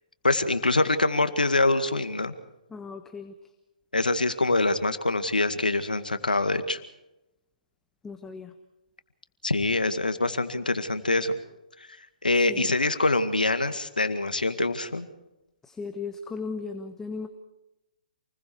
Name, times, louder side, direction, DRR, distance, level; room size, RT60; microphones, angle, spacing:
voice 1, 0.2-2.3 3.9-6.8 9.4-11.3 12.2-15.1, left 2 dB, 90° left, 10 dB, 2.0 m, -24 dB
voice 2, 2.7-3.3 8.0-8.5 12.5-12.7 15.6-17.3, left 4 dB, 10° left, 6 dB, 1.3 m, -36 dB
28.5 x 21.0 x 4.8 m, 0.95 s
figure-of-eight pair, 135°, 4 cm